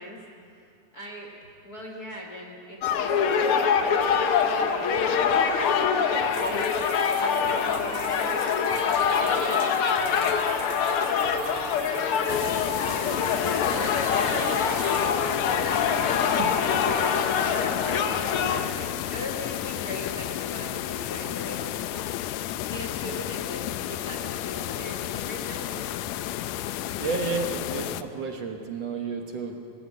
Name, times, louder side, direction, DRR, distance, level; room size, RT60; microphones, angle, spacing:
voice 1, 0.0-1.3 1.6-5.0 5.5-6.0 6.3-6.9 7.2-8.4 9.1-12.8 13.7-15.3 16.5-25.9, left 1 dB, 45° left, 1 dB, 1.3 m, -40 dB
sound 1, 2.8-18.7, left 6 dB, 70° left, 1.3 m, -24 dB
sound 2, 6.3-15.1, right 6 dB, 80° right, 3.6 m, -43 dB
sound 3, 12.3-28.0, left 13 dB, 85° left, 1.6 m, -32 dB
voice 2, 16.2-16.6 27.0-29.6, right 4 dB, 60° right, 3 dB, 2.0 m, -31 dB
19.5 x 17.5 x 8.3 m, 2.6 s
omnidirectional pair, 3.8 m